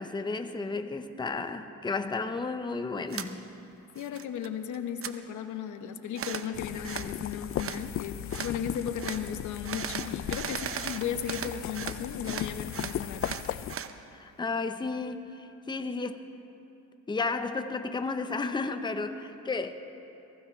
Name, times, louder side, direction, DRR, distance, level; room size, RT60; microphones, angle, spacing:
voice 1, 0.0-3.5 14.2-16.2 17.1-19.7, left 3 dB, 15° left, 8 dB, 0.8 m, -33 dB
sound 1, 3.1-3.3 3.7-4.5 4.7-5.1 6.1-6.5 6.8-7.1 7.6-7.8 8.3-8.5 9.0-9.2 9.6-12.0 12.2-13.9, right 8 dB, 45° right, 0.8 m, -37 dB
voice 2, 3.9-13.4, left 8 dB, 75° left, 8 dB, 1.0 m, -35 dB
sound 2, 6.5-13.8, left 11 dB, 45° left, 0.4 m, -37 dB
23.0 x 16.0 x 3.3 m, 2.9 s
cardioid pair, 90°, 30 cm